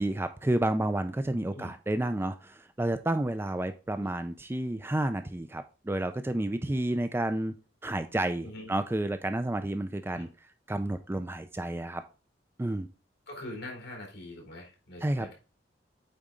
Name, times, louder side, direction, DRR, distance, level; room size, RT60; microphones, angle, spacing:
voice 1, 0.0-7.5 7.8-10.3 10.7-12.0 12.6-12.9 15.0-15.3, right 1 dB, 15° right, 9 dB, 0.4 m, -30 dB
voice 2, 8.4-8.7 10.1-10.3 13.3-15.3, left 1 dB, 65° left, -1 dB, 3.6 m, -43 dB
8.7 x 4.3 x 3.7 m, 0.33 s
head